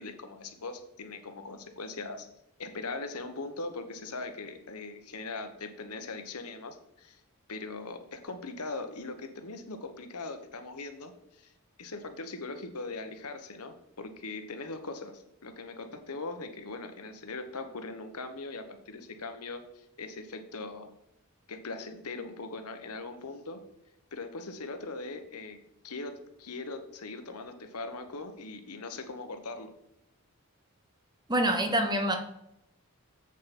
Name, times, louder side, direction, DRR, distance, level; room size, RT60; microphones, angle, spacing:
voice 1, 0.0-2.3 2.6-7.2 7.5-11.5 11.8-20.9 21.5-23.6 24.1-25.6 25.8-29.7, left 3 dB, 90° left, 7 dB, 1.2 m, -40 dB
voice 2, 31.3-32.2, right 1 dB, 20° right, 5 dB, 1.0 m, -26 dB
7.6 x 7.3 x 4.3 m, 0.85 s
head